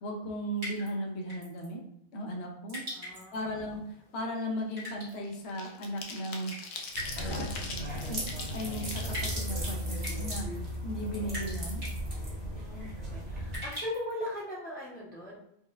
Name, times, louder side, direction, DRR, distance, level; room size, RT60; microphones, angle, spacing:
voice 1, 0.0-1.8 2.1-2.8 3.3-6.5 7.2-8.2 8.5-10.4 10.8-11.8, equal, 85° left, 1 dB, 0.9 m, -36 dB
sound 1, 0.6-0.9 1.3-1.7 2.7-3.4 4.8-5.2 6.5-7.2 7.5-7.6 8.3-8.4 9.1-9.5 10.0-10.3 11.3-11.6 11.8-12.0 13.5-14.1, left 1 dB, 90° right, 1.8 m, -39 dB
voice 2, 2.9-3.6 7.3-8.0 12.5-15.3, left 1 dB, 10° left, -7 dB, 0.5 m, -40 dB
sound 2, 3.5-3.8 4.1-10.5 10.9-11.0 11.3-12.3 12.6-12.7 13.0-13.3, left 4 dB, 60° left, 0.6 m, -44 dB
sound 3, 6.9-13.6, equal, 40° right, 1.0 m, -35 dB
4.5 x 2.1 x 2.3 m, 0.73 s
omnidirectional pair, 1.1 m